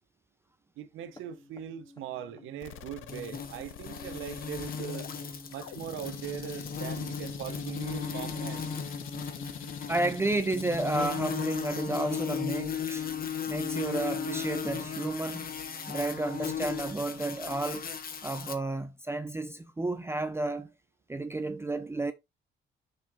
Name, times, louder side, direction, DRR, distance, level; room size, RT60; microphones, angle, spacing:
voice 1, 0.8-5.1 5.5-8.8, right 10 dB, 90° right, 1.0 m, -40 dB
sound 1, 1.1-17.8, left 2 dB, 20° left, 1.9 m, -49 dB
sound 2, 2.6-11.6, left 11 dB, 80° left, 0.8 m, -46 dB
sound 3, 3.1-18.5, left 7 dB, 45° left, 1.4 m, -36 dB
voice 2, 9.9-13.1 13.5-15.5 15.9-17.9 18.2-20.7 21.1-22.1, right 2 dB, 10° right, 0.6 m, -31 dB
6.6 x 6.1 x 3.1 m
cardioid pair, 90°, 20 cm